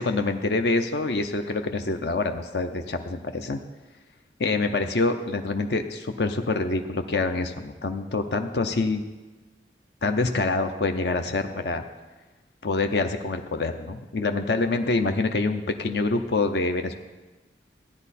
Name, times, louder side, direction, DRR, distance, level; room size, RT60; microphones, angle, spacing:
voice 1, 0.0-3.6 4.4-9.0 10.0-11.8 12.6-16.9, left 3 dB, 70° left, 6 dB, 0.6 m, -26 dB
15.0 x 9.8 x 4.2 m, 1.2 s
head